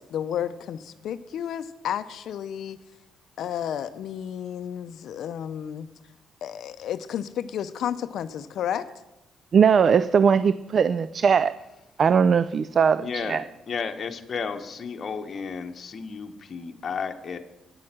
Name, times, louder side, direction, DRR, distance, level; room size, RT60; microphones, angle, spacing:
voice 1, 0.0-2.8 3.4-5.9 6.4-8.9, left 9 dB, 75° left, 0.5 m, -32 dB
voice 2, 9.5-11.6 12.0-13.4, right 6 dB, 50° right, 0.3 m, -20 dB
voice 3, 13.0-17.4, left 5 dB, 45° left, 0.9 m, -33 dB
9.5 x 7.6 x 7.4 m
cardioid pair, 90°, 0 cm